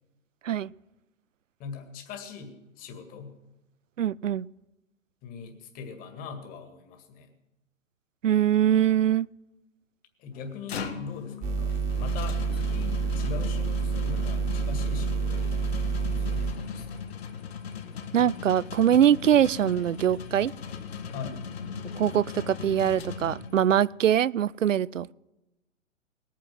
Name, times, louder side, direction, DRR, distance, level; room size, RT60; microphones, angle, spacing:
voice 1, 1.6-3.4 5.2-7.3 10.2-15.7 16.1-17.0 21.1-21.4, left 6 dB, 20° left, 2.1 m, -41 dB
voice 2, 4.0-4.5 8.2-9.3 18.1-20.5 21.9-25.1, right 10 dB, 70° right, 0.5 m, -23 dB
sound 1, 10.4-23.8, left 6 dB, 50° left, 1.8 m, -38 dB
sound 2, 11.4-16.5, right 5 dB, 20° right, 1.7 m, -28 dB
20.0 x 9.2 x 7.5 m
figure-of-eight pair, 120°, 39 cm